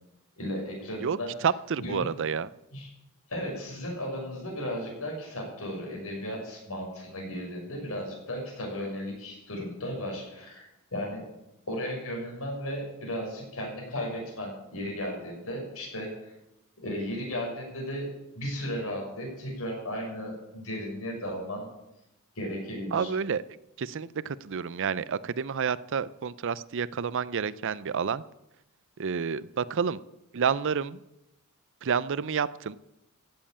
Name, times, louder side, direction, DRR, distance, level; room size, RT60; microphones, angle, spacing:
voice 1, 0.4-1.3 1.8-2.1 2.7-2.9 3.3-11.3 11.7-16.3 16.8-18.1 18.3-21.7 22.3-23.1, equal, 70° left, 0 dB, 6.2 m, -35 dB
voice 2, 1.0-2.5 22.9-23.4 23.8-28.2 29.0-30.0 30.3-31.0 31.8-32.8, right 6 dB, 60° right, 18 dB, 0.5 m, -29 dB
16.0 x 7.7 x 8.6 m, 0.88 s
head